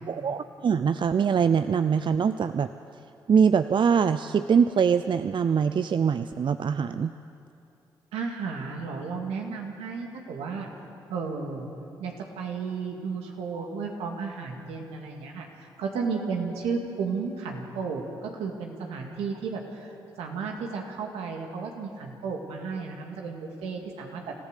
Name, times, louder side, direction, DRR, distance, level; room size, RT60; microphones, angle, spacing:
voice 1, 0.1-2.7 3.3-7.1 13.5-13.7, right 6 dB, 50° right, 11 dB, 0.6 m, -23 dB
voice 2, 8.1-10.7 11.1-11.7 12.0-24.3, right 5 dB, 80° right, 1 dB, 2.2 m, -33 dB
26.5 x 15.0 x 6.7 m, 2.6 s
hypercardioid pair, 40°, 10 cm